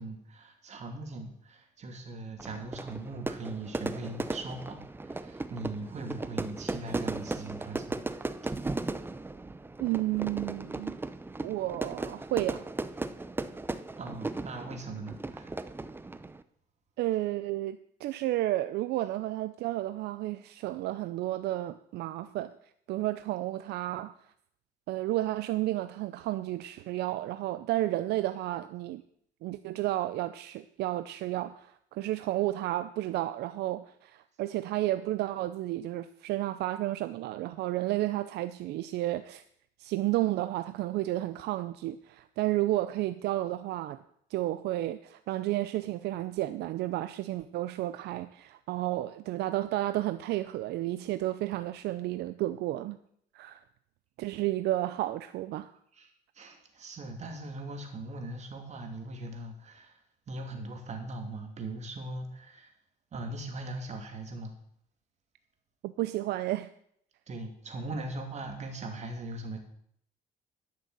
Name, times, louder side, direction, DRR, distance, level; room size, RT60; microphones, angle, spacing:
voice 1, 0.0-8.0 14.0-15.6 55.9-60.0 60.3-62.7 63.1-64.6 67.3-69.6, right 2 dB, 40° right, 2.8 m, -40 dB
Fire / Fireworks, 2.4-16.4, right 3 dB, 15° right, 0.7 m, -37 dB
voice 2, 9.8-11.0 11.4-12.7 17.0-22.5 22.9-24.1 24.9-29.0 29.4-39.4 39.8-44.0 44.3-53.0 53.3-53.6 54.2-55.7 65.8-66.7, right 15 dB, 75° right, 0.6 m, -32 dB
12.0 x 6.7 x 7.5 m
cardioid pair, 110°, 17 cm